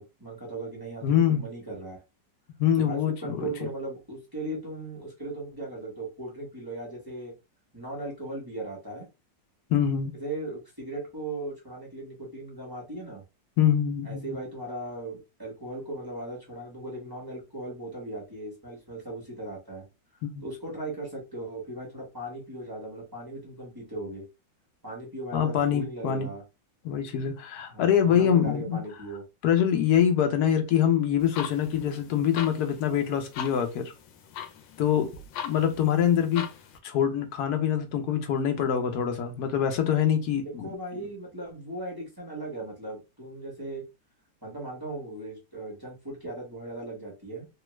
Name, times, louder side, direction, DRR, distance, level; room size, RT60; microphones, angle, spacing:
voice 1, 0.0-2.0 2.7-7.3 7.7-9.1 10.2-13.2 14.0-19.8 20.4-24.2 24.8-26.4 27.7-29.2 40.6-43.8 44.4-47.5, right 2 dB, 15° right, 0.9 m, -38 dB
voice 2, 1.0-1.4 2.6-3.5 9.7-10.1 13.6-14.2 20.2-20.4 25.3-26.3 26.8-28.8 29.4-33.9 34.8-35.1 35.4-36.4 36.8-40.7, left 9 dB, 65° left, 1.1 m, -24 dB
sound 1, 31.2-36.8, left 9 dB, 85° left, 1.3 m, -41 dB
3.0 x 2.3 x 3.0 m
omnidirectional pair, 1.9 m